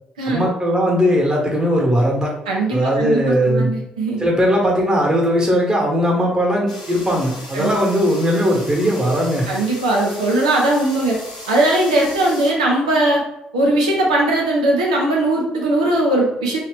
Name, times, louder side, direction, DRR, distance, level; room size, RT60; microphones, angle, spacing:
voice 1, 0.3-2.3 2.7-3.7 4.2-9.5, equal, 20° right, -2 dB, 1.2 m, -18 dB
voice 2, 2.5-4.3 7.5-7.7 9.5-11.2 11.5-13.2 13.5-16.6, right 1 dB, 75° right, -2 dB, 0.6 m, -19 dB
sound 1, 6.7-12.5, left 1 dB, 85° left, 0.6 m, -37 dB
3.0 x 2.7 x 3.4 m, 0.84 s
figure-of-eight pair, 45°, 4 cm